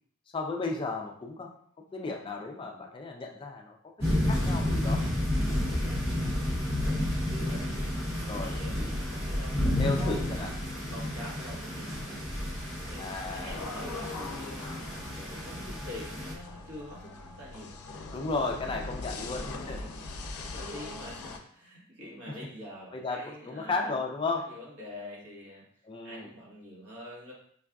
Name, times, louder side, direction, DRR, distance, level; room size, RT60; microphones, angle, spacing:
voice 1, 0.3-1.5 1.9-5.2 7.4-7.6 8.3-8.6 9.6-10.5 13.0-13.6 18.1-19.8 22.9-24.5 25.9-26.3, left 3 dB, 25° left, 2 dB, 0.3 m, -34 dB
sound 1, 4.0-16.3, left 1 dB, 10° right, 0.8 m, -31 dB
voice 2, 5.7-6.2 6.7-7.7 8.4-10.4 10.9-11.9 12.9-14.7 15.1-17.7 18.8-24.0 24.3-25.6 26.0-27.3, equal, 60° right, -5 dB, 1.4 m, -46 dB
sound 2, 13.5-21.4, left 3 dB, 85° left, 0.5 m, -41 dB
5.2 x 2.4 x 2.3 m, 0.62 s
head